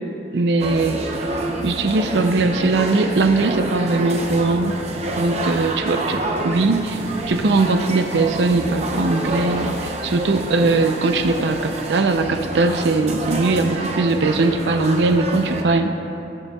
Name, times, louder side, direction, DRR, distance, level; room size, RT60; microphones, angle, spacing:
voice 1, 0.3-1.0 1.3-4.7 5.2-15.9, right 3 dB, 75° right, 7 dB, 0.5 m, -20 dB
sound 1, 0.6-15.6, right 2 dB, 40° right, 0.7 m, -28 dB
19.0 x 6.9 x 2.3 m, 2.9 s
head